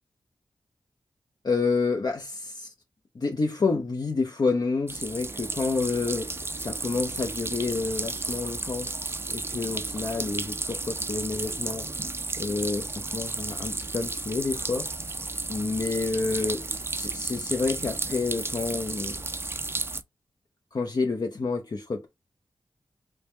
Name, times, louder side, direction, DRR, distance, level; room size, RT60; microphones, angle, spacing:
voice 1, 1.4-2.7 3.1-8.9 9.3-11.9 12.4-14.9 15.5-19.2 20.7-22.1, left 4 dB, 50° left, 0.6 m, -29 dB
sound 1, 4.9-20.0, right 3 dB, 25° right, 0.4 m, -33 dB
3.3 x 2.1 x 4.2 m
cardioid pair, 50°, 9 cm